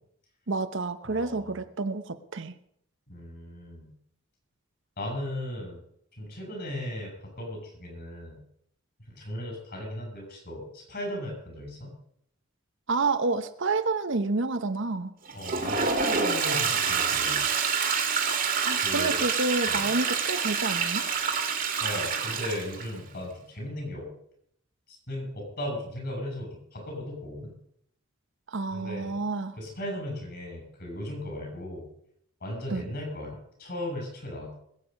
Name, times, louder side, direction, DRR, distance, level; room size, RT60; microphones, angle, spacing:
voice 1, 0.5-2.5 12.9-15.1 18.6-21.0 28.5-29.6 32.7-32.8, right 3 dB, 65° right, 10 dB, 0.9 m, -29 dB
voice 2, 1.0-1.6 3.1-3.9 5.0-5.8 6.2-8.4 9.1-11.9 15.3-17.5 18.8-19.2 19.7-19.9 21.8-24.1 24.9-27.6 28.7-29.2 29.6-31.9 32.4-34.6, left 1 dB, 55° left, 1 dB, 6.8 m, -37 dB
Toilet flush, 15.3-22.9, right 5 dB, 45° right, 2.1 m, -27 dB
21.0 x 8.5 x 5.3 m, 0.68 s
head